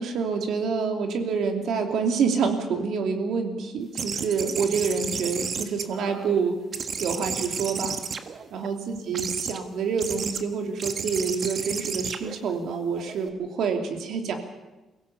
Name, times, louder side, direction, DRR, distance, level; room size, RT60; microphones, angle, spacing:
voice 1, 0.0-6.6 7.0-8.0 8.5-14.4, right 5 dB, 75° right, 4 dB, 2.9 m, -27 dB
sound 1, 3.9-6.4 6.7-8.7 9.1-9.6 10.0-10.4 10.8-13.3, right 6 dB, 50° right, 1.5 m, -32 dB
23.5 x 16.5 x 7.1 m, 1.1 s
cardioid pair, 90°, 0 cm